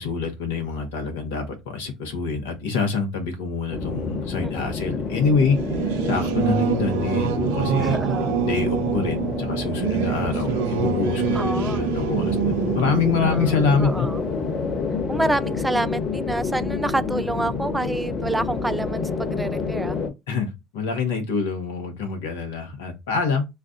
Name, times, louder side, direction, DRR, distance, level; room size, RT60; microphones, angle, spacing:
voice 1, 0.0-5.6 6.0-8.0 8.4-14.1 20.3-23.5, left 5 dB, 85° left, 1.2 m, -26 dB
sound 1, 3.7-20.1, left 4 dB, 50° left, 1.4 m, -28 dB
voice 2, 4.4-4.8 7.8-8.4 11.3-11.8 13.2-13.5 13.8-14.2 15.1-20.0, right 2 dB, 15° right, 0.4 m, -28 dB
Singing / Musical instrument, 5.4-15.5, right 9 dB, 80° right, 0.6 m, -26 dB
3.2 x 2.3 x 3.8 m
hypercardioid pair, 60°, 0 cm